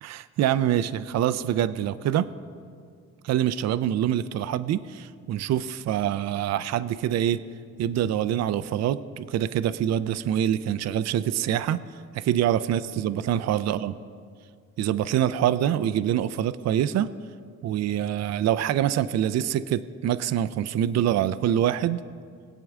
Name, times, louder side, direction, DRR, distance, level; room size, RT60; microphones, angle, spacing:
voice 1, 0.0-2.3 3.2-7.4 7.8-11.8 12.1-13.9 14.8-17.1 17.6-22.0, right 11 dB, 60° right, 14 dB, 0.5 m, -25 dB
20.5 x 8.5 x 3.6 m, 2.2 s
cardioid pair, 90°, 30 cm